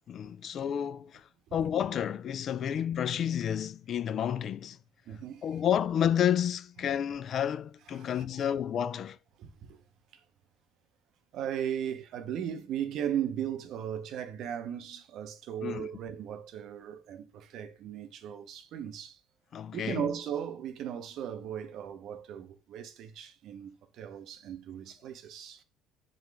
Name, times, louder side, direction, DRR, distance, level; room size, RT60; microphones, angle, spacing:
voice 1, 0.1-4.8 5.4-9.2 15.6-15.9 19.5-20.1, left 9 dB, 50° left, 0.3 m, -30 dB
voice 2, 5.1-5.4 7.9-8.5 9.4-9.8 10.1-10.2 11.3-19.2 19.7-25.6, right 9 dB, 60° right, 0.6 m, -37 dB
6.1 x 2.4 x 3.3 m
hypercardioid pair, 60°, 0 cm